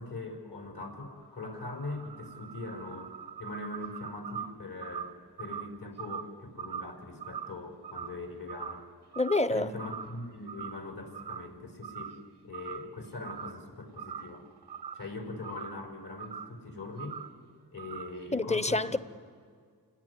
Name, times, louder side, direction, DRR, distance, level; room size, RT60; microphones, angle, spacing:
voice 1, 0.0-3.1 3.4-8.9 9.5-12.1 12.4-14.5 14.9-17.2 17.7-19.0, left 2 dB, 70° left, 5.2 m, -41 dB
sound 1, 1.2-8.9 9.1-9.5 9.8-10.9 11.1-11.5 11.8-12.3 12.5-13.7 13.9-15.9 16.2-16.6 17.0-17.4 17.8-18.3, right 7 dB, 90° right, 0.9 m, -42 dB
voice 2, 9.2-9.7 18.3-19.0, left 2 dB, 15° left, 0.7 m, -27 dB
29.0 x 18.5 x 9.8 m
wide cardioid pair, 85°, 39 cm